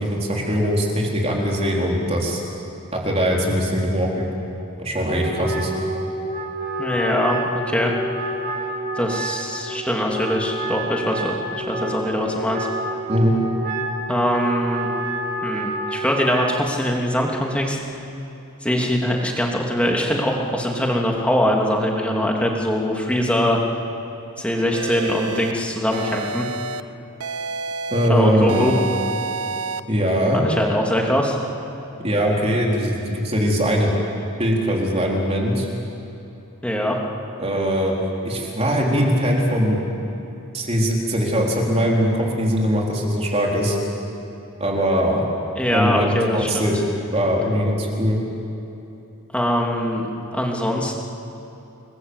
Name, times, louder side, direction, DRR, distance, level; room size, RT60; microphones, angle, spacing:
voice 1, 0.0-2.4 2.9-4.3 4.8-5.7 13.1-13.4 27.9-28.8 29.9-30.4 32.0-33.9 34.4-35.7 37.4-37.9 38.2-39.8 40.5-43.8 44.6-45.3 45.7-46.8 47.1-48.2, equal, 30° right, -2 dB, 4.1 m, -21 dB
Wind instrument woodwind instrument, 4.9-16.6, right 1 dB, 45° right, 3.8 m, -28 dB
voice 2, 6.8-7.9 9.0-12.7 14.1-14.9 15.4-17.8 18.6-23.6 24.4-26.5 28.1-28.7 30.3-31.4 36.6-37.0 45.5-46.7 49.3-50.1 50.3-51.0, equal, 5° left, -1 dB, 2.8 m, -22 dB
sound 1, 24.7-25.5 25.9-26.8 27.2-28.1 28.5-29.8, right 4 dB, 90° right, 1.0 m, -29 dB
30.0 x 21.5 x 8.2 m, 2.9 s
head